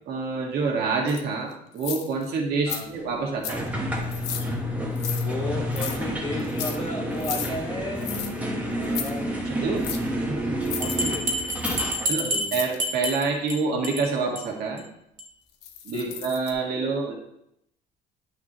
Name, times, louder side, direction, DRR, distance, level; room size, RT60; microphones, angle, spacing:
voice 1, 0.1-3.6 9.5-9.8 10.1-10.6 12.1-14.9 15.8-17.1, right 4 dB, 70° right, 0 dB, 1.9 m, -27 dB
sound 1, 1.1-1.2 1.8-2.2 2.7-2.8 3.4-3.7 4.1-4.5 5.0-5.3 5.7-6.0 6.4-6.8 7.2-7.5 8.0-8.3 8.8-9.1 9.8-10.0 10.6-11.0 11.6-11.8 12.5-12.8 15.6-16.5, left 9 dB, 80° left, 0.8 m, -33 dB
sound 2, 3.5-12.1, equal, 10° right, 1.3 m, -29 dB
voice 2, 5.1-8.1 8.7-9.3 10.8-11.3 11.8-12.5 15.9-16.1, left 2 dB, 30° left, -2 dB, 2.2 m, -34 dB
Bell, 10.8-13.6 13.8-14.1 14.4-14.5 14.8-14.9 15.2-15.3, right 1 dB, 50° right, 1.2 m, -28 dB
9.1 x 6.0 x 3.1 m, 0.78 s
cardioid pair, 110°, 17 cm